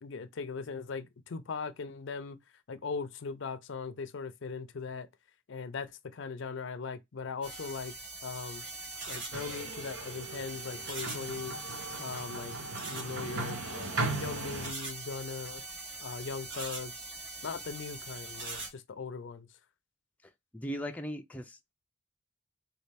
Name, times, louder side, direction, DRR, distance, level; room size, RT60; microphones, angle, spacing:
voice 1, 0.0-2.4 2.7-5.1 5.5-7.9 8.2-8.6 9.1-11.6 12.0-12.6 12.9-15.6 16.0-16.9 17.4-19.5, left 5 dB, 65° left, 0.5 m, -39 dB
sound 1, 7.4-18.7, right 3 dB, 55° right, 1.6 m, -42 dB
sound 2, 9.3-14.7, right 3 dB, 80° right, 0.9 m, -38 dB
voice 2, 20.5-21.7, equal, 10° left, 0.4 m, -38 dB
4.2 x 2.3 x 3.3 m
head